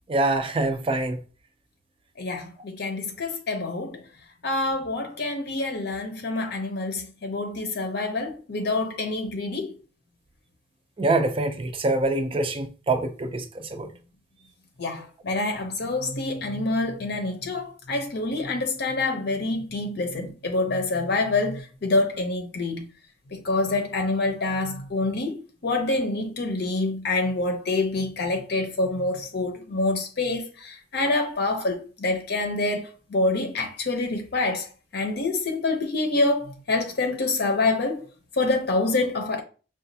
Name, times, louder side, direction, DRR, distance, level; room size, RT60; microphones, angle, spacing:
voice 1, 0.1-1.2 11.0-13.9, right 2 dB, 30° right, 0.4 m, -25 dB
voice 2, 2.2-4.0 4.4-9.7 14.8-22.9 23.3-34.7 34.9-38.1 38.3-39.4, left 2 dB, 60° left, 0.6 m, -26 dB
5.9 x 2.3 x 2.7 m
head